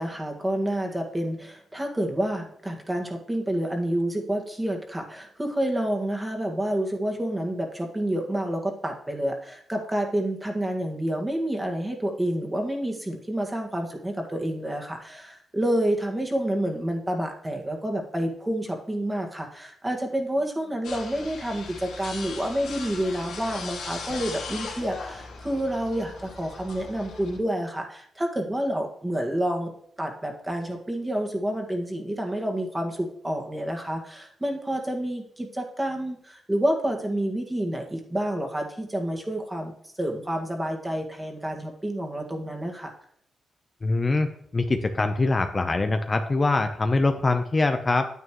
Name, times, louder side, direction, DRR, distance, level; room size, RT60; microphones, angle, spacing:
voice 1, 0.0-29.7 30.0-42.9, right 1 dB, 15° right, 2 dB, 1.8 m, -29 dB
sound 1, 20.8-27.4, left 4 dB, 90° left, 2.2 m, -38 dB
voice 2, 43.8-44.3 44.5-48.1, left 3 dB, 30° left, 7 dB, 0.7 m, -23 dB
9.5 x 8.8 x 3.1 m, 0.66 s
cardioid pair, 75°, 0 cm